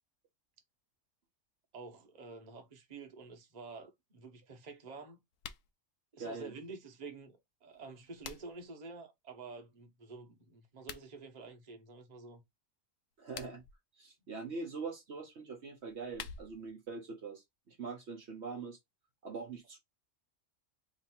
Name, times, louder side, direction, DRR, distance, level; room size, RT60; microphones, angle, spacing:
voice 1, 1.7-5.2 6.1-12.4, right 4 dB, 35° right, 1.0 m, -49 dB
sound 1, 5.3-5.7 7.7-8.7 10.7-11.1 13.1-13.8 15.8-16.7, left 8 dB, 85° left, 1.0 m, -48 dB
voice 2, 6.2-6.5 13.2-13.6 14.0-18.8 19.2-19.8, right 4 dB, 60° right, 1.1 m, -43 dB
3.1 x 2.6 x 4.3 m
omnidirectional pair, 1.3 m